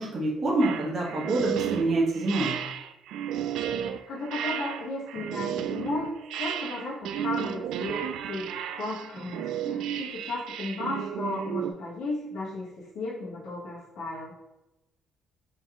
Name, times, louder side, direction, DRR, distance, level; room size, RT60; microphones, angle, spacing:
voice 1, 0.0-2.6, right 2 dB, 35° right, -4 dB, 1.0 m, -26 dB
sound 1, 0.6-11.7, right 9 dB, 75° right, 0.3 m, -33 dB
voice 2, 4.1-14.3, left 2 dB, 65° left, -6 dB, 1.2 m, -35 dB
4.1 x 3.4 x 3.6 m, 0.93 s
cardioid pair, 130°, 0 cm